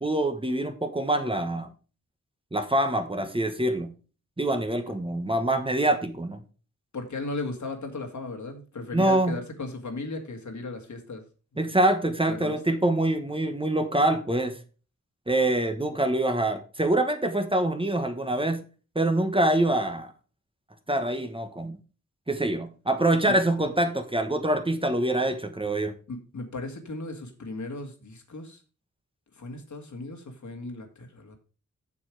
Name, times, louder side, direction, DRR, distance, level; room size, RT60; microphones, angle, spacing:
voice 1, 0.0-1.7 2.5-3.9 4.4-6.4 8.9-9.4 11.6-14.6 15.3-18.6 18.9-20.1 20.9-21.8 22.3-25.9, right 1 dB, 15° right, 7 dB, 1.2 m, -25 dB
voice 2, 6.9-11.2 12.3-12.8 26.1-28.6 29.4-31.4, left 3 dB, 70° left, 4 dB, 2.1 m, -36 dB
7.2 x 7.1 x 4.7 m, 0.35 s
wide cardioid pair, 85°, 30 cm